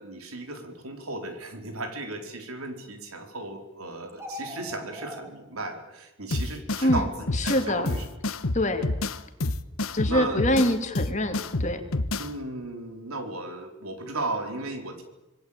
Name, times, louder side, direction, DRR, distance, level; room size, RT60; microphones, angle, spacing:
voice 1, 0.0-8.0 10.1-10.4 12.1-15.0, right 2 dB, 85° right, 5 dB, 4.6 m, -35 dB
sound 1, 4.1-5.3, left 1 dB, 10° right, 3.4 m, -39 dB
sound 2, 6.3-12.3, left 2 dB, 80° left, 1.2 m, -29 dB
voice 2, 7.3-7.9 8.5-8.9 9.9-11.8, left 1 dB, 35° left, 6 dB, 2.5 m, -25 dB
26.5 x 21.0 x 9.0 m, 0.94 s
head